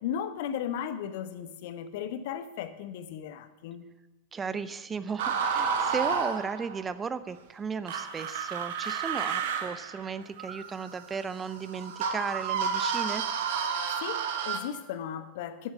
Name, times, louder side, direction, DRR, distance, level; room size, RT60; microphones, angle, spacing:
voice 1, 0.0-3.9 14.0-15.7, left 9 dB, 50° left, 11 dB, 0.9 m, -36 dB
voice 2, 4.3-13.2, right 5 dB, 20° right, 14 dB, 0.6 m, -35 dB
sound 1, 5.2-6.9 7.9-14.6, right 6 dB, 55° right, 1.1 m, -31 dB
8.8 x 8.0 x 8.5 m, 1.0 s
figure-of-eight pair, 90°, 0 cm